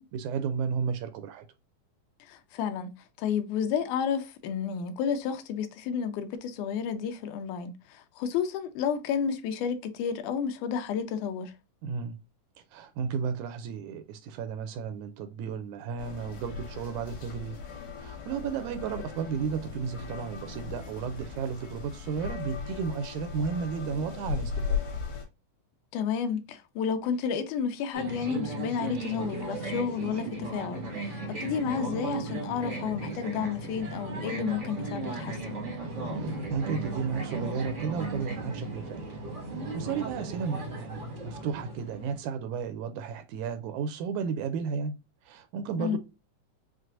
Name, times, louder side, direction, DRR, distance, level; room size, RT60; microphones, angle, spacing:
voice 1, 0.0-1.5 11.8-12.2 12.7-17.6 18.0-24.8 36.1-39.0 39.7-45.0 45.2-46.0, right 6 dB, 80° right, 1.8 m, -33 dB
voice 2, 2.2-11.5 25.9-35.6 45.8-46.0, left 7 dB, 80° left, 2.1 m, -31 dB
sound 1, 16.0-25.2, left 6 dB, 65° left, 2.7 m, -37 dB
sound 2, 27.9-42.2, right 2 dB, 45° right, 0.9 m, -36 dB
6.0 x 2.4 x 2.5 m
omnidirectional pair, 3.6 m